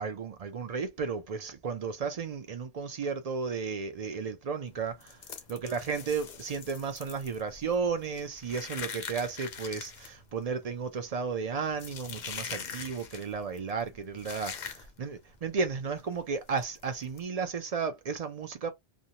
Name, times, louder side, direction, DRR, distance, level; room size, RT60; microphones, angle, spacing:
voice 1, 0.0-5.2 5.5-18.7, right 5 dB, 50° right, 0.4 m, -33 dB
sound 1, 4.7-15.2 15.4-15.7 16.0-16.1 16.6-17.2, left 6 dB, 55° left, 0.6 m, -43 dB
2.5 x 2.2 x 2.8 m
omnidirectional pair, 1.2 m